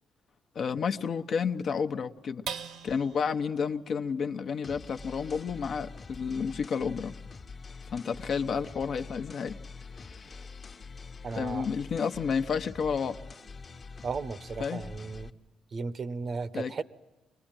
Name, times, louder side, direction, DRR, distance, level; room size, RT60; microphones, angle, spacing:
voice 1, 0.5-2.5 2.8-7.2 7.9-9.6 9.9-10.4 11.4-13.2 14.6-14.8 16.5-16.7, left 6 dB, 55° left, 0.9 m, -31 dB
sound 1, 2.5-9.2 9.6-9.7 10.1-10.6, right 7 dB, 85° right, 1.5 m, -47 dB
sound 2, 4.6-15.3, left 4 dB, 40° left, 1.1 m, -45 dB
voice 2, 11.2-11.7 14.0-15.3 15.7-16.8, right 4 dB, 50° right, 0.9 m, -35 dB
24.5 x 20.0 x 9.0 m
cardioid pair, 90°, 0 cm